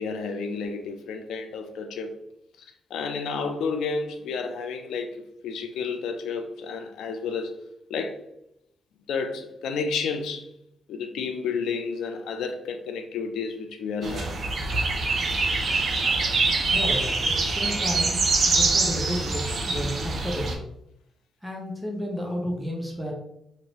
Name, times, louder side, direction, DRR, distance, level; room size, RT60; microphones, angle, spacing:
voice 1, 0.0-2.1 2.9-7.6 7.9-8.2 9.1-10.5 10.9-14.4, left 5 dB, 85° left, 0.4 m, -31 dB
sound 1, 14.0-20.5, right 3 dB, 55° right, 0.7 m, -24 dB
voice 2, 16.7-20.6 21.4-23.1, equal, 5° right, 0.8 m, -32 dB
3.0 x 2.6 x 2.9 m
cardioid pair, 70°, 0 cm